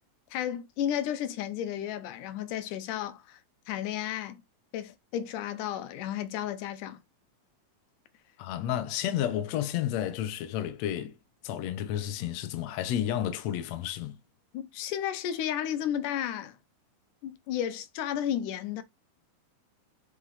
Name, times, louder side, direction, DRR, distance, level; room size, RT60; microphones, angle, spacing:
voice 1, 0.3-3.4 3.7-4.4 4.7-7.0 14.5-16.6 17.2-18.8, left 10 dB, 90° left, 2.5 m, -33 dB
voice 2, 8.4-11.2 11.4-14.1, left 11 dB, 70° left, 2.0 m, -31 dB
6.2 x 5.4 x 4.1 m
omnidirectional pair, 3.5 m